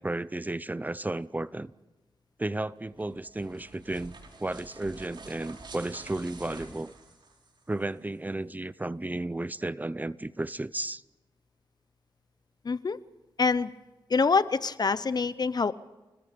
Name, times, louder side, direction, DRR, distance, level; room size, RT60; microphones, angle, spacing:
voice 1, 0.0-1.7 2.4-6.9 7.7-11.0, right 2 dB, 20° right, 0.7 m, -33 dB
sound 1, 2.9-7.8, right 3 dB, 60° right, 4.7 m, -48 dB
voice 2, 12.6-13.0 13.4-13.7 14.1-15.7, left 4 dB, 50° left, 0.9 m, -25 dB
30.0 x 20.5 x 5.3 m
cardioid pair, 80°, 9 cm